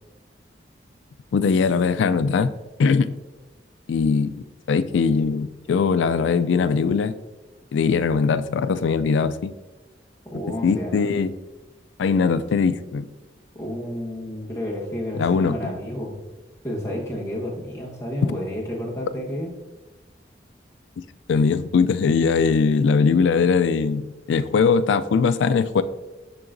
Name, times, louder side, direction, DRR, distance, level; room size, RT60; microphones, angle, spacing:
voice 1, 1.3-2.5 2.8-3.2 3.9-7.1 7.7-9.5 10.6-11.3 12.0-13.1 15.2-15.6 21.3-25.8, left 5 dB, 90° left, 14 dB, 0.3 m, -20 dB
voice 2, 10.3-11.1 13.5-16.2 16.6-19.5, equal, 15° left, -4 dB, 1.2 m, -30 dB
10.5 x 3.8 x 2.6 m, 1.2 s
head